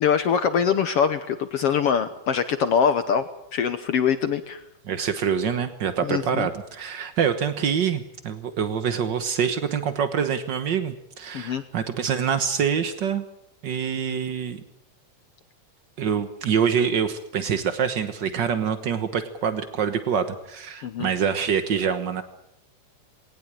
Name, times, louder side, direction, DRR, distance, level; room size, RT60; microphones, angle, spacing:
voice 1, 0.0-4.6 6.0-6.5 11.3-11.6 20.8-21.1, left 7 dB, 65° left, 11 dB, 1.6 m, -23 dB
voice 2, 4.9-13.2 13.6-14.6 16.0-22.2, right 7 dB, 75° right, 10 dB, 1.0 m, -25 dB
20.5 x 18.5 x 9.0 m, 0.78 s
omnidirectional pair, 3.7 m